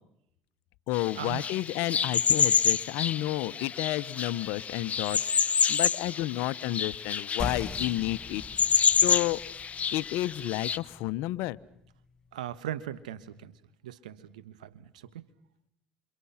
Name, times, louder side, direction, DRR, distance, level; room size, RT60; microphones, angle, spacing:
voice 1, 0.9-9.4 9.9-11.6, left 16 dB, 70° left, 15 dB, 1.1 m, -31 dB
sound 1, 0.9-10.8, left 7 dB, 35° left, 1.1 m, -28 dB
sound 2, 7.4-12.5, left 3 dB, 20° left, 1.9 m, -42 dB
voice 2, 12.3-13.5 13.8-14.9 15.1-15.2, right 11 dB, 90° right, 13 dB, 1.5 m, -38 dB
28.0 x 28.0 x 5.8 m, 0.77 s
hypercardioid pair, 70°, 4 cm